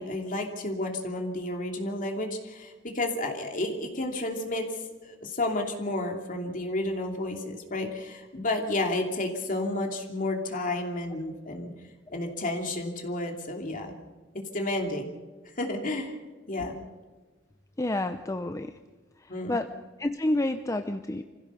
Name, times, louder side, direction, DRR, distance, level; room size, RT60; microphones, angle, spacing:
voice 1, 0.0-11.7 12.1-14.0 14.5-15.1 15.6-16.2 16.5-16.8 19.3-19.6, left 2 dB, 45° left, 2 dB, 2.8 m, -31 dB
voice 2, 17.8-18.8 19.2-19.7 20.0-21.2, left 1 dB, 15° left, 8 dB, 0.6 m, -30 dB
24.5 x 16.0 x 6.9 m, 1.3 s
head